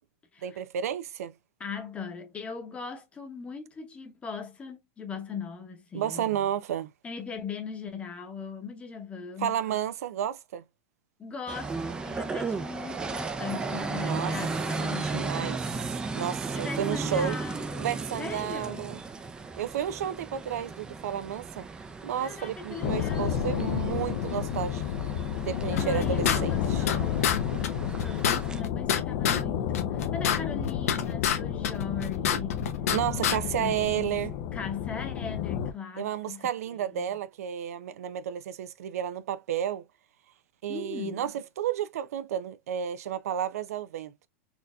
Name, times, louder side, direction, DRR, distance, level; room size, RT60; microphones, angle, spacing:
voice 1, 0.4-1.3 5.9-6.9 9.4-10.6 14.0-14.3 15.0-15.6 16.2-17.4 17.8-19.0 19.6-21.6 22.0-24.8 25.4-26.9 32.9-34.4 36.0-39.8 40.6-44.1, right 10 dB, 85° right, 0.4 m, -32 dB
voice 2, 1.6-6.3 7.0-9.6 11.2-15.6 16.5-18.9 22.2-24.0 25.7-32.8 33.3-34.2 34.5-37.0 40.7-41.2, left 5 dB, 15° left, 0.9 m, -39 dB
sound 1, 11.5-28.6, right 4 dB, 10° right, 0.5 m, -35 dB
sound 2, 22.8-35.7, left 9 dB, 45° left, 0.5 m, -31 dB
sound 3, 25.8-27.0 27.2-27.4 27.6-27.7 28.0-29.4 29.7-31.4 31.6-33.0 33.2-33.4, left 8 dB, 80° left, 0.8 m, -26 dB
4.3 x 2.7 x 2.3 m
supercardioid pair, 150°, 8 cm